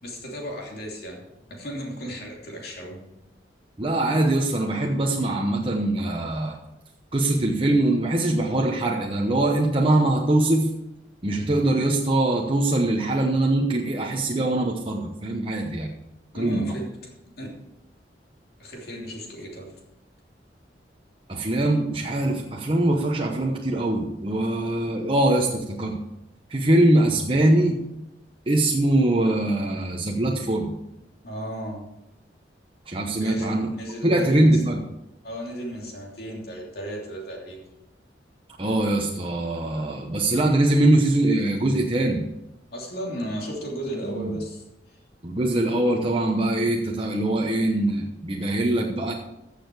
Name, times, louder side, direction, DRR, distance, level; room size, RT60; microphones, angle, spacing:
voice 1, 0.0-1.2 1.5-3.0 16.3-17.0 17.4-17.5 18.6-19.8 31.2-31.9 33.2-34.6 35.2-37.7 42.7-45.0, equal, 55° left, -1 dB, 2.9 m, -35 dB
voice 2, 3.8-6.6 7.1-10.7 11.2-15.9 16.3-16.7 21.3-26.0 26.5-27.8 28.5-30.7 32.9-33.7 34.0-34.8 38.6-42.2 44.1-44.3 45.2-49.1, right 1 dB, 30° right, 0 dB, 0.9 m, -22 dB
15.0 x 6.7 x 4.7 m, 0.91 s
head